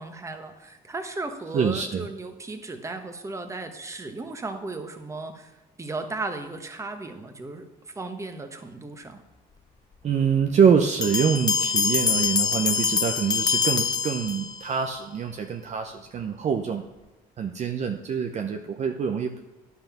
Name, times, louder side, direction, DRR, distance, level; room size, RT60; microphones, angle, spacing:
voice 1, 0.0-5.5 5.8-7.7 7.9-9.2, right 3 dB, 15° right, 6 dB, 1.2 m, -35 dB
voice 2, 1.5-2.1 10.0-16.9 17.4-19.4, right 6 dB, 40° right, 4 dB, 0.7 m, -25 dB
Bell, 11.0-14.8, left 5 dB, 25° left, 0.6 m, -25 dB
10.5 x 5.7 x 5.8 m, 1.1 s
cardioid pair, 110°, 17 cm